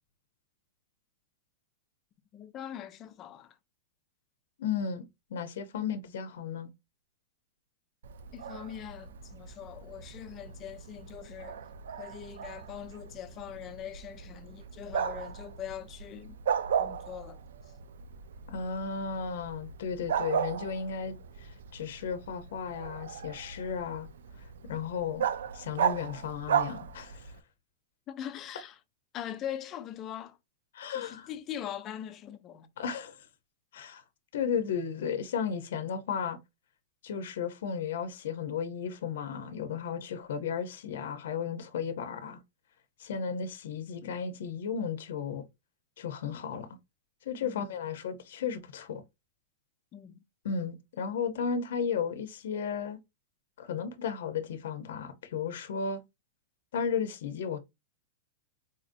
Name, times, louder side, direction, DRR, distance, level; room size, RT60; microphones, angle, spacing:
voice 1, 2.3-3.5 8.3-11.6 12.0-16.4 16.8-17.4 28.1-28.8 29.1-30.4 30.9-32.7 47.4-47.7 49.9-50.2, left 10 dB, 20° left, 0.4 m, -42 dB
voice 2, 4.6-5.0 5.3-6.7 18.5-24.1 24.4-25.2 25.5-27.3 30.7-31.3 32.8-33.3 33.7-34.0 34.3-36.4 37.0-42.4 43.0-45.4 46.0-46.7 47.2-49.0 50.4-53.0 53.6-56.0 56.7-57.6, left 6 dB, 65° left, 0.6 m, -34 dB
Bark, 8.0-27.4, right 8 dB, 80° right, 0.3 m, -36 dB
4.0 x 2.5 x 2.5 m
supercardioid pair, 175°, 0 cm